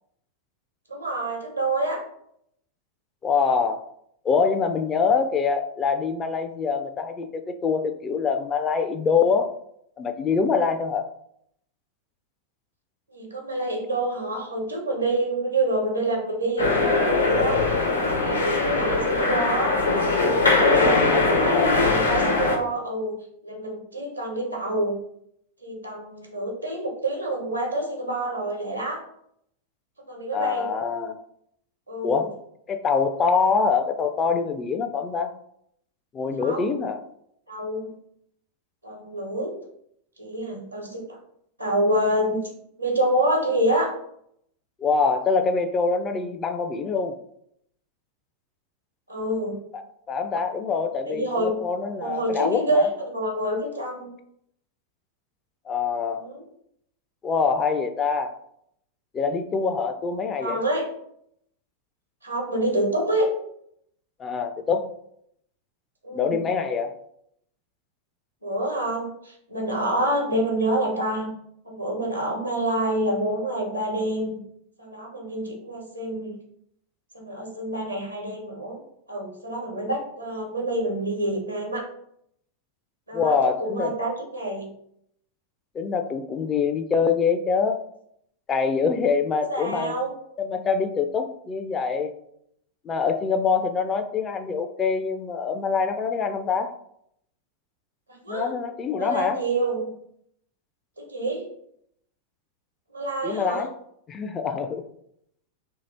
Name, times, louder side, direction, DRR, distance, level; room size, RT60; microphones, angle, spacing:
voice 1, 0.9-2.0 13.1-19.8 20.4-25.0 25.6-29.0 30.0-30.7 31.9-32.3 36.4-36.8 37.5-37.9 38.8-39.5 40.2-41.2 41.6-42.4 42.8-43.9 49.1-49.6 51.1-51.7 52.0-54.1 56.2-56.4 60.4-60.9 62.2-63.3 66.0-66.5 68.4-71.3 71.6-74.4 74.8-76.4 77.1-78.8 79.1-81.9 83.1-84.7 89.5-90.1 98.1-98.5 99.0-99.9 101.0-101.5 102.9-103.6, right 1 dB, 85° right, 0 dB, 1.0 m, -27 dB
voice 2, 3.2-3.8 4.2-9.5 10.0-11.1 20.8-21.8 30.3-31.2 32.0-32.3 32.7-35.3 36.1-37.0 44.8-47.2 49.7-49.8 50.1-52.9 55.7-56.2 57.2-58.3 59.1-60.6 64.2-64.9 66.1-66.9 83.1-83.9 85.7-87.8 88.5-89.9 90.4-92.1 92.8-96.7 98.3-99.4 103.2-103.7 104.1-104.8, left 5 dB, 25° left, 8 dB, 0.4 m, -24 dB
sound 1, 16.6-22.6, left 3 dB, 80° left, 1.0 m, -21 dB
2.9 x 2.8 x 3.9 m, 0.73 s
figure-of-eight pair, 90°, 0 cm